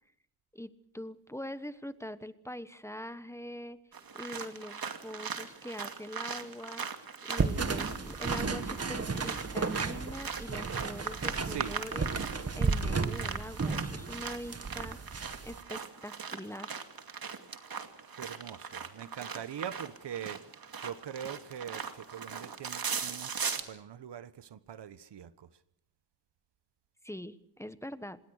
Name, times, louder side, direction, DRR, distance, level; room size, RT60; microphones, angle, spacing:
voice 1, 0.5-3.8 4.1-6.8 7.2-12.1 12.5-15.0 15.4-16.8 27.0-28.2, left 1 dB, 5° left, 1.1 m, -43 dB
sound 1, 3.9-23.6, right 6 dB, 60° right, 2.4 m, -39 dB
sound 2, 7.4-15.6, right 4 dB, 35° right, 1.9 m, -34 dB
voice 2, 18.2-25.5, right 9 dB, 80° right, 1.2 m, -43 dB
26.5 x 20.5 x 6.5 m
wide cardioid pair, 100°, 41 cm